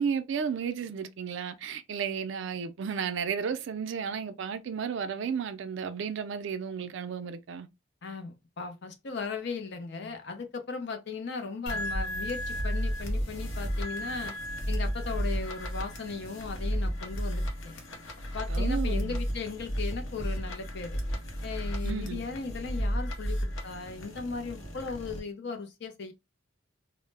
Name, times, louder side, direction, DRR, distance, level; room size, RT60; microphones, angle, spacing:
voice 1, 0.0-7.7 18.5-19.2 21.8-22.2, right 6 dB, 60° right, 0.3 m, -33 dB
voice 2, 8.0-14.3 14.7-17.7 18.3-21.0 21.4-26.1, left 4 dB, 55° left, 0.5 m, -37 dB
sound 1, 11.7-25.2, equal, 85° left, 0.7 m, -33 dB
2.0 x 2.0 x 3.2 m
head